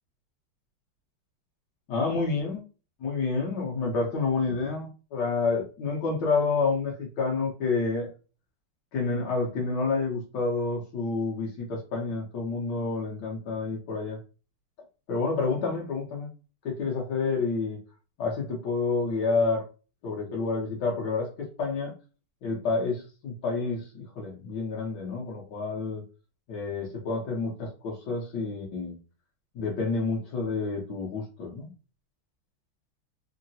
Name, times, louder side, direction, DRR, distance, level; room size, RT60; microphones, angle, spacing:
voice 1, 1.9-2.6 3.0-8.1 8.9-14.2 15.1-16.3 16.6-17.8 18.2-19.6 20.0-21.9 22.4-26.0 26.5-29.0 29.5-31.7, left 4 dB, 65° left, -2 dB, 1.2 m, -29 dB
3.7 x 2.1 x 2.6 m, 0.34 s
omnidirectional pair, 2.3 m